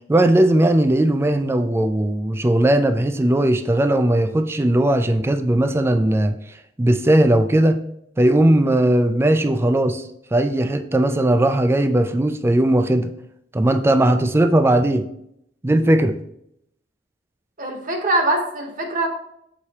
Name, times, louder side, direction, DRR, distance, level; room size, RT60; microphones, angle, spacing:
voice 1, 0.1-6.4 6.8-7.8 8.2-10.0 10.3-13.1 13.5-15.0 15.6-16.2, right 1 dB, 15° right, 8 dB, 0.3 m, -18 dB
voice 2, 17.6-19.1, right 2 dB, 50° right, 4 dB, 1.0 m, -22 dB
6.8 x 4.8 x 2.8 m, 0.75 s
head